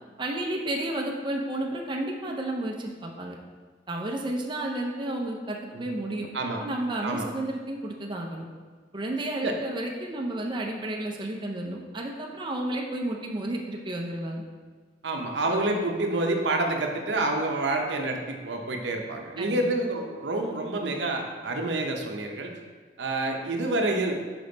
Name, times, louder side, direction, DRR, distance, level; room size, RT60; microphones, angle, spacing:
voice 1, 0.2-3.4 3.9-6.3 6.6-8.5 8.9-14.4 19.4-19.7, right 1 dB, 25° right, 0 dB, 0.5 m, -32 dB
voice 2, 15.0-22.5 23.0-24.2, right 2 dB, 75° right, 2 dB, 0.7 m, -28 dB
5.2 x 5.1 x 3.9 m, 1.5 s
head